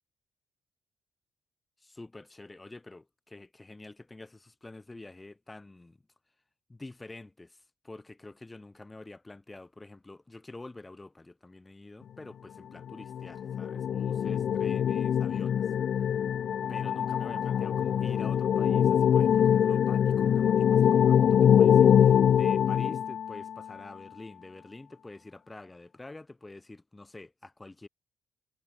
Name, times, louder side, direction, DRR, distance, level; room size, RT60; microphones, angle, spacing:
voice 1, 1.8-6.0 6.7-15.6 16.7-27.9, left 2 dB, 15° left, 4.3 m, -47 dB
sound 1, 12.9-23.6, left 9 dB, 60° left, 0.5 m, -24 dB
cardioid pair, 105°, 0 cm